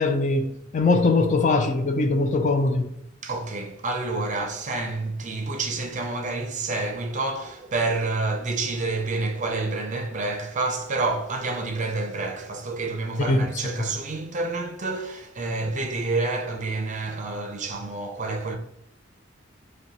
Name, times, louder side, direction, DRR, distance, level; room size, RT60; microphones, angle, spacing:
voice 1, 0.0-2.9 13.2-13.5, left 3 dB, 40° left, 0.4 m, -21 dB
voice 2, 3.2-18.6, right 3 dB, 40° right, 0.5 m, -28 dB
5.2 x 2.2 x 2.8 m
head